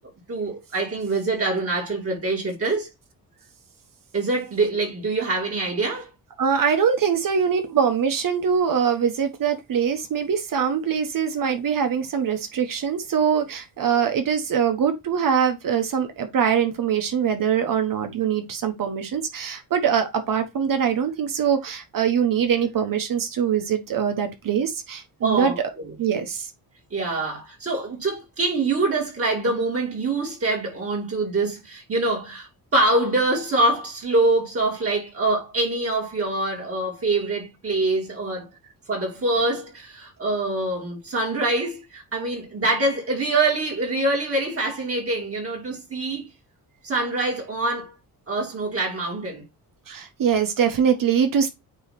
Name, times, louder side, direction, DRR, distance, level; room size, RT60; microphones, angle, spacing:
voice 1, 0.3-2.9 4.1-6.1 25.2-25.9 26.9-38.5 38.9-46.3 46.8-47.9 48.3-49.4, right 2 dB, 35° right, 2.5 m, -25 dB
voice 2, 6.4-25.5 26.0-26.5 49.9-51.5, right 7 dB, 60° right, 1.3 m, -23 dB
8.9 x 3.1 x 4.2 m
cardioid pair, 140°, 37 cm